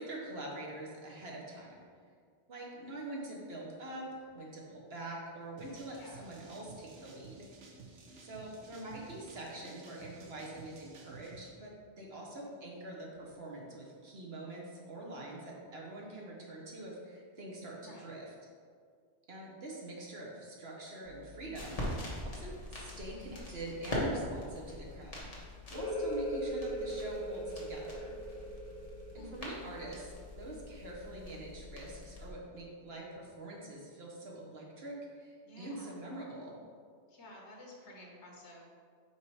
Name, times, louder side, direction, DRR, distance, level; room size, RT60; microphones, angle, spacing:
voice 1, 0.0-1.8 2.5-4.1 4.3-7.5 8.2-11.7 12.0-18.2 19.3-25.3 25.7-28.1 29.1-30.1 30.4-36.5, right 2 dB, 60° right, -2 dB, 1.2 m, -45 dB
sound 1, 5.6-11.5, right 4 dB, 80° right, 1.2 m, -54 dB
voice 2, 5.9-6.2 12.1-12.2 17.8-18.1 23.1-23.6 29.2-29.3 35.4-36.0 37.1-38.6, left 1 dB, 70° left, -1 dB, 1.5 m, -53 dB
sound 2, 21.0-32.3, left 1 dB, 30° left, 1.4 m, -43 dB
sound 3, 25.7-31.1, equal, 10° left, 0.8 m, -39 dB
5.6 x 4.7 x 4.7 m, 2.1 s
omnidirectional pair, 1.2 m